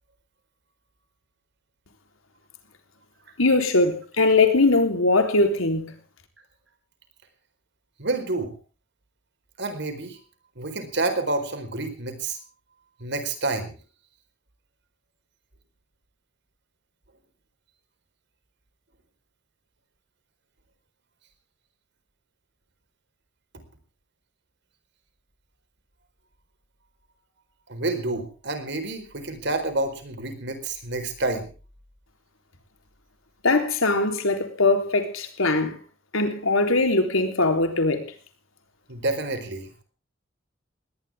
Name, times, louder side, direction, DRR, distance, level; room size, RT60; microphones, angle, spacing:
voice 1, 3.4-5.9 33.4-35.8 36.1-38.1, left 3 dB, 85° left, 3.7 m, -21 dB
voice 2, 8.0-8.6 9.6-10.2 10.6-12.4 13.0-13.8 27.7-31.5 38.9-39.8, right 2 dB, 60° right, 4.4 m, -29 dB
20.0 x 18.5 x 3.6 m
head